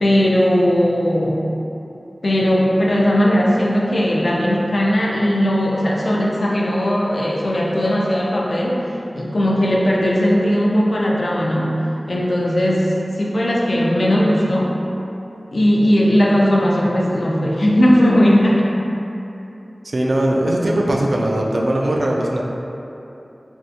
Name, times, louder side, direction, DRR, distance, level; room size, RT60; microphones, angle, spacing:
voice 1, 0.0-1.5 2.2-8.8 9.1-11.8 12.0-14.8 15.5-18.7, equal, 75° left, -3 dB, 0.4 m, -17 dB
voice 2, 19.8-22.4, right 1 dB, 75° right, -2 dB, 0.3 m, -19 dB
3.4 x 2.6 x 2.4 m, 2.9 s
wide cardioid pair, 45°, 0 cm